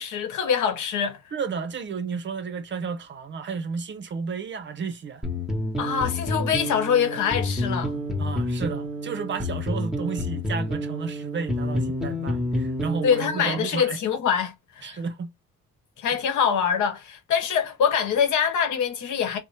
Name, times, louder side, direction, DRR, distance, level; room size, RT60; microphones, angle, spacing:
voice 1, 0.0-1.2 5.8-7.9 13.0-15.0 16.0-19.4, left 7 dB, 75° left, 0.9 m, -24 dB
voice 2, 1.3-5.2 8.2-14.0 14.8-15.3, right 5 dB, 40° right, 0.5 m, -32 dB
sound 1, 5.2-13.7, left 1 dB, ahead, 1.0 m, -29 dB
2.6 x 2.0 x 3.1 m
cardioid pair, 90°, 30 cm